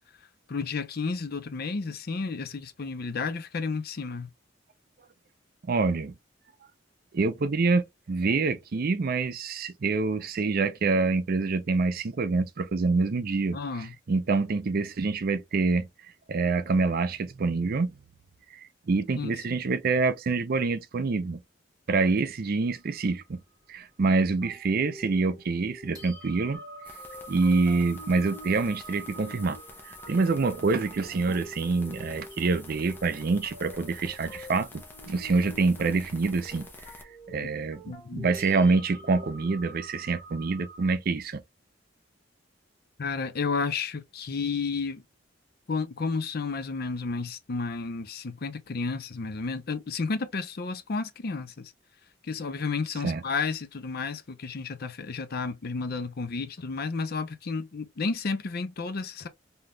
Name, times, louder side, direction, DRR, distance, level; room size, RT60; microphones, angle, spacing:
voice 1, 0.5-4.3 13.5-13.9 19.2-19.3 37.9-38.3 43.0-45.0 45.7-51.7 52.2-59.3, left 4 dB, 55° left, 0.5 m, -32 dB
voice 2, 5.7-6.2 7.1-15.9 16.3-17.9 18.5-21.4 21.9-23.4 23.7-26.6 27.3-29.6 29.8-36.7 37.3-41.4 53.0-53.2, right 3 dB, 50° right, 0.5 m, -26 dB
sound 1, 22.6-25.0 25.5-25.6 25.9-40.9, right 2 dB, 20° right, 1.2 m, -49 dB
sound 2, 24.4-39.8, equal, 30° left, 1.6 m, -48 dB
sound 3, 26.8-37.0, left 2 dB, 10° left, 0.6 m, -49 dB
3.4 x 2.8 x 2.3 m
head